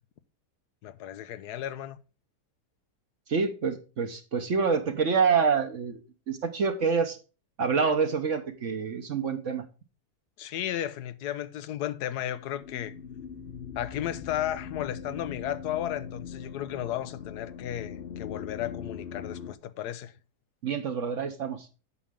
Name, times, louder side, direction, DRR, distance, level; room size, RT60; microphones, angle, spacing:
voice 1, 0.8-2.0 10.4-12.9 13.7-20.1, left 11 dB, 90° left, 1.2 m, -34 dB
voice 2, 3.3-6.0 6.3-7.2 7.6-9.6 20.6-21.7, right 5 dB, 55° right, 1.2 m, -27 dB
sound 1, 12.3-19.5, left 7 dB, 60° left, 0.6 m, -41 dB
8.4 x 7.2 x 3.6 m
omnidirectional pair, 1.7 m